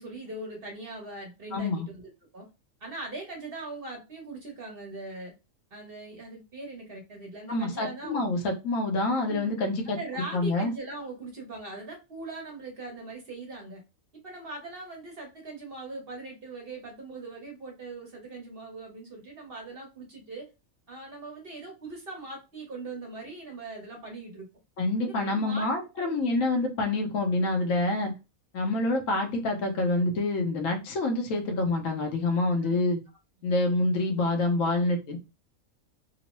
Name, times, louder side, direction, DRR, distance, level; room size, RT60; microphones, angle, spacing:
voice 1, 0.0-2.5 2.8-5.3 5.7-8.5 9.3-9.6 10.0-13.8 14.2-20.5 20.9-24.5 25.0-25.7 26.0-26.4 32.6-32.7, right 2 dB, 45° right, 0 dB, 1.0 m, -41 dB
voice 2, 1.5-1.9 7.5-10.0 10.3-10.7 24.8-28.1 28.5-33.0 33.4-35.2, left 2 dB, 70° left, 3 dB, 1.1 m, -27 dB
2.9 x 2.0 x 2.9 m, 0.27 s
omnidirectional pair, 1.5 m